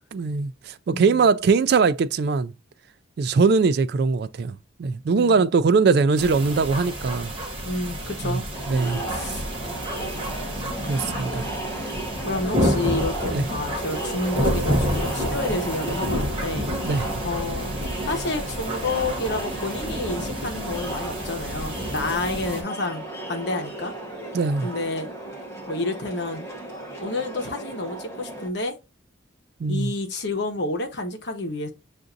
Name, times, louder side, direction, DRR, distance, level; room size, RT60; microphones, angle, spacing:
voice 1, 0.1-2.5 3.2-7.3 8.2-8.4 8.7-9.4 10.9-11.4 13.3-13.5 16.8-17.1 24.3-24.7 29.6-29.9, right 4 dB, 55° right, 0.3 m, -21 dB
voice 2, 0.9-1.3 5.1-5.4 7.6-8.5 9.1-9.4 12.3-16.7 17.2-17.7 18.0-23.9 24.6-25.1 25.7-26.5 27.0-28.8 29.7-31.7, left 2 dB, 55° left, 0.9 m, -29 dB
sound 1, 6.2-22.6, equal, 25° right, 0.9 m, -29 dB
Crowd, 8.5-28.5, right 2 dB, 15° left, 1.0 m, -35 dB
6.9 x 2.5 x 2.5 m
head